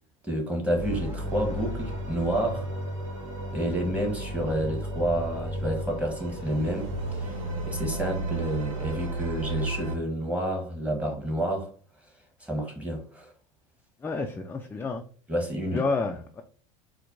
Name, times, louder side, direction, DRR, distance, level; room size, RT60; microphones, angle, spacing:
voice 1, 0.2-2.7 3.5-7.4 7.7-11.7 12.4-13.3 15.3-15.8, right 1 dB, 10° right, 1.2 m, -29 dB
sound 1, 0.7-9.9, right 1 dB, 80° right, 1.2 m, -33 dB
voice 2, 14.0-15.0 15.7-16.4, left 3 dB, 10° left, 0.3 m, -29 dB
4.3 x 2.2 x 2.6 m
supercardioid pair, 100°, 17 cm